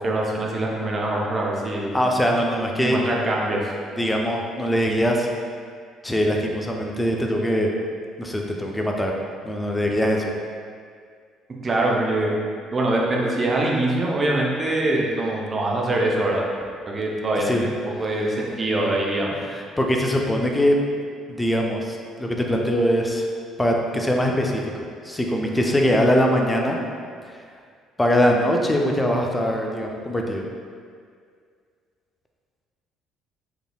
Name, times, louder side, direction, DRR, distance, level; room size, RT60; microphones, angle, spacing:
voice 1, 0.0-1.9 2.8-3.6 11.6-12.3 12.7-16.5 16.9-17.7 18.0-19.4, right 2 dB, 30° right, -2 dB, 0.7 m, -23 dB
voice 2, 1.9-3.0 4.0-5.3 6.0-7.7 8.2-9.1 9.4-10.3 17.4-17.6 19.5-20.8 21.3-23.3 23.6-24.6 25.0-26.8 27.3-27.4 28.0-30.4, equal, 15° left, 1 dB, 0.5 m, -22 dB
4.9 x 3.2 x 2.3 m, 2.1 s
figure-of-eight pair, 50°, 0 cm